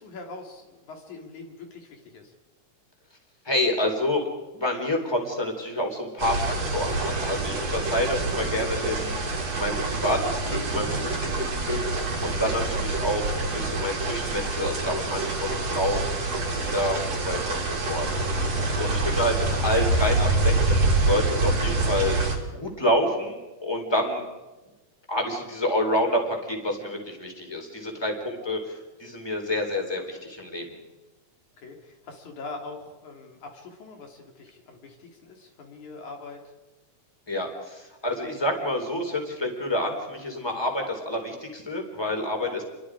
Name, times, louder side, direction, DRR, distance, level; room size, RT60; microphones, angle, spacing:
voice 1, 0.0-2.3 18.7-18.9 31.6-36.4, left 3 dB, 70° left, 2 dB, 4.7 m, -43 dB
voice 2, 3.4-4.2 4.5-9.2 9.5-11.8 12.2-16.0 16.5-18.1 18.3-22.2 22.5-24.2 25.1-30.8 37.3-42.6, left 1 dB, 10° left, 2 dB, 4.1 m, -28 dB
sound 1, 6.2-22.4, right 2 dB, 55° right, 4.6 m, -26 dB
29.5 x 23.5 x 5.0 m, 1.1 s
omnidirectional pair, 3.5 m